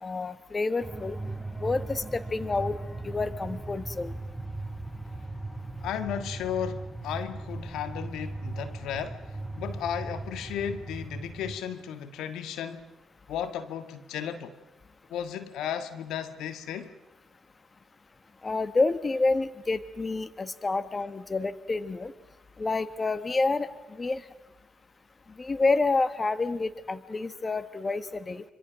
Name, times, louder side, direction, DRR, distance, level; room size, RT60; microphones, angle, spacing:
voice 1, 0.0-1.2 1.6-2.8 3.0-4.1 18.4-22.1 22.6-23.7 24.0-24.2 25.4-28.4, left 3 dB, 30° left, 1.4 m, -28 dB
sound 1, 0.8-11.6, right 2 dB, ahead, 3.4 m, -38 dB
voice 2, 5.8-9.2 9.5-12.9 13.3-14.6 15.1-16.9, left 9 dB, 75° left, 1.6 m, -34 dB
26.0 x 25.5 x 6.3 m
supercardioid pair, 55°, 0 cm